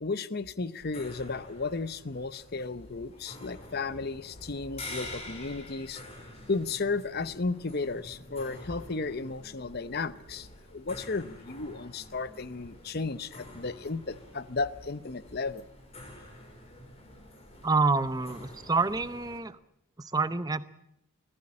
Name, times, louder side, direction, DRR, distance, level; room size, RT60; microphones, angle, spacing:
voice 1, 0.0-6.0 6.5-15.7, left 3 dB, 45° left, 15 dB, 0.8 m, -34 dB
sound 1, 0.8-19.4, left 1 dB, 30° left, 4.7 m, -48 dB
voice 2, 17.6-19.6 20.0-20.7, right 3 dB, 15° right, 13 dB, 0.7 m, -27 dB
24.5 x 15.5 x 8.7 m, 0.82 s
head